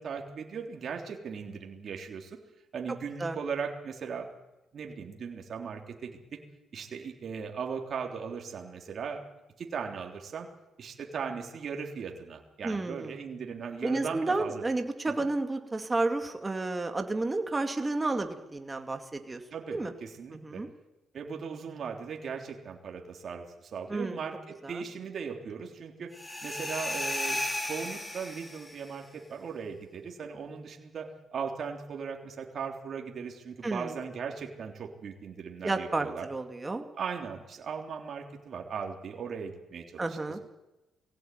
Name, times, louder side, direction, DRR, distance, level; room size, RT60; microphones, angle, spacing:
voice 1, 0.0-2.4 2.7-4.3 4.7-6.1 6.7-9.2 9.6-10.5 10.8-14.6 15.2-15.3 19.5-20.6 21.1-23.4 23.7-26.1 26.4-31.1 31.3-36.3 37.0-40.4, right 6 dB, 55° right, 2 dB, 3.5 m, -38 dB
voice 2, 12.6-13.2 13.8-19.4 19.7-19.9 20.3-20.7 23.9-24.2 24.6-24.8 33.6-34.0 35.6-36.9 40.0-40.4, right 2 dB, 20° right, 6 dB, 2.5 m, -31 dB
sound 1, 26.1-28.9, left 1 dB, 15° left, 3.6 m, -34 dB
21.0 x 17.0 x 9.4 m, 1.0 s
cardioid pair, 90°, 0 cm